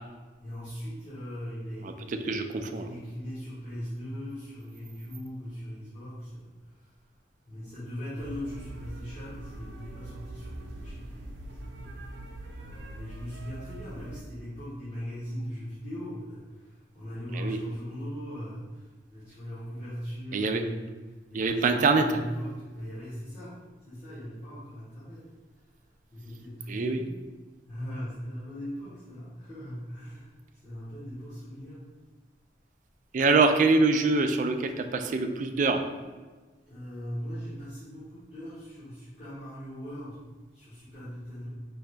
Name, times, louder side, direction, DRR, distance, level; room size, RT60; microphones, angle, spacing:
voice 1, 0.4-6.9 7.5-12.1 12.5-23.6 23.8-25.6 26.1-27.1 27.7-31.9 33.2-33.3 36.7-40.2 40.5-41.5, equal, 35° left, -13 dB, 1.4 m, -40 dB
voice 2, 1.8-2.9 17.3-17.6 20.3-20.6 21.3-22.1 26.7-27.0 33.1-35.8, right 3 dB, 45° right, 6 dB, 0.3 m, -24 dB
sound 1, 8.2-14.2, right 1 dB, 75° right, 0.6 m, -43 dB
5.0 x 2.7 x 3.3 m, 1.3 s
head